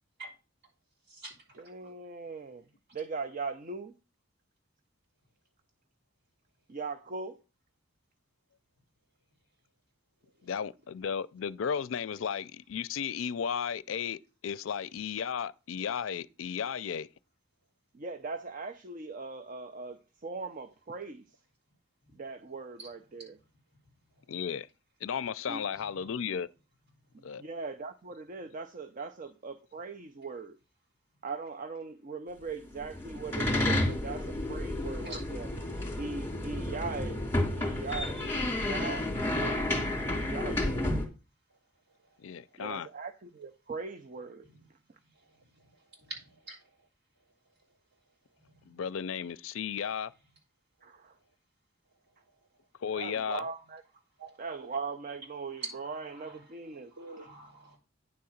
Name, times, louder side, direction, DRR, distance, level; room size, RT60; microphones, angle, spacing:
voice 1, 1.5-2.6 2.9-3.9 6.7-7.4 17.9-21.2 22.1-23.4 25.5-25.6 27.1-30.6 31.2-35.5 36.0-37.2 37.5-39.7 40.0-40.8 42.6-44.5 50.8-51.2 52.9-53.8 54.4-57.3, right 4 dB, 40° right, 0.6 m, -40 dB
voice 2, 10.4-17.1 24.3-24.7 25.0-26.5 27.2-27.4 42.2-42.9 48.7-50.1 52.8-53.4, left 7 dB, 75° left, 0.4 m, -34 dB
sound 1, 32.8-41.0, left 1 dB, 15° left, 2.5 m, -31 dB
voice 3, 46.1-46.6 48.5-48.8 54.2-54.3 57.0-57.8, right 2 dB, 55° right, 3.9 m, -45 dB
9.7 x 3.8 x 7.1 m
head